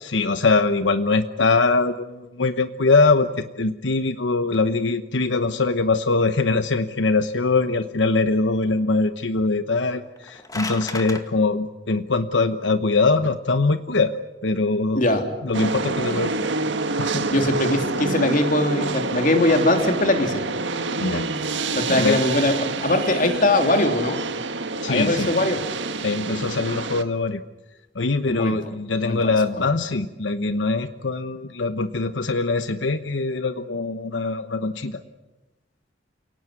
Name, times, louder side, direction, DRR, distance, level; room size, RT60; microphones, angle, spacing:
voice 1, 0.0-14.1 14.4-15.0 15.4-16.5 17.0-17.3 21.0-21.3 21.9-22.2 24.8-25.3 26.0-27.4 27.9-35.0, left 3 dB, 90° left, 10 dB, 1.0 m, -22 dB
sound 1, 10.1-11.2, left 3 dB, 20° left, 2.1 m, -33 dB
voice 2, 15.0-15.3 17.3-20.4 21.7-24.2 24.9-25.6 28.3-28.6 29.1-29.2 29.6-29.7, left 2 dB, 45° left, 5 dB, 3.3 m, -21 dB
sound 2, 15.5-27.0, right 3 dB, 80° right, 1.6 m, -27 dB
29.5 x 18.5 x 9.7 m, 1.1 s
head